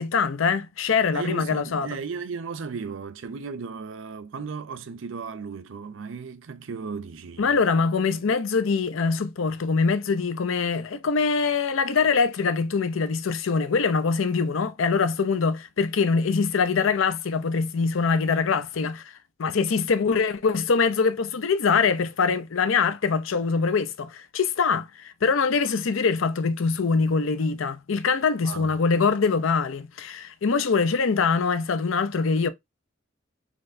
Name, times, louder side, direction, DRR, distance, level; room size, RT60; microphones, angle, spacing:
voice 1, 0.0-2.0 7.4-19.0 19.4-32.5, left 5 dB, 80° left, 0.5 m, -23 dB
voice 2, 1.1-7.6 28.4-28.8, right 5 dB, 70° right, 0.5 m, -35 dB
4.2 x 3.0 x 2.6 m
head